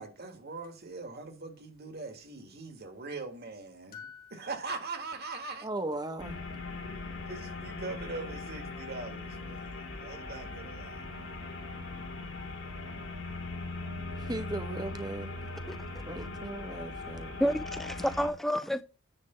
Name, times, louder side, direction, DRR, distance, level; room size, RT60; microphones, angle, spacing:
voice 1, 0.0-4.0 4.3-5.7 7.3-11.0, right 3 dB, 55° right, 1.7 m, -41 dB
sound 1, 0.6-0.7 3.9-5.4, left 7 dB, 50° left, 1.9 m, -51 dB
voice 2, 5.6-6.4 14.2-15.3 16.1-17.3, right 2 dB, 20° right, 0.9 m, -37 dB
sound 2, 6.2-18.3, left 3 dB, 65° left, 2.3 m, -40 dB
voice 3, 17.4-18.8, equal, ahead, 0.3 m, -29 dB
9.7 x 3.3 x 6.8 m
head